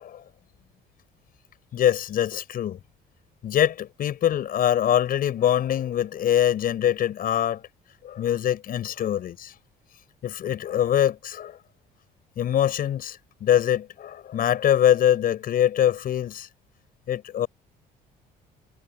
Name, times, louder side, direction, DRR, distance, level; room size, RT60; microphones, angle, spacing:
voice 1, 1.7-2.8 3.4-7.6 8.0-9.3 10.2-11.6 12.4-16.5 17.1-17.5, left 10 dB, 60° left, 7.6 m, -23 dB
cardioid pair, 110°, 17 cm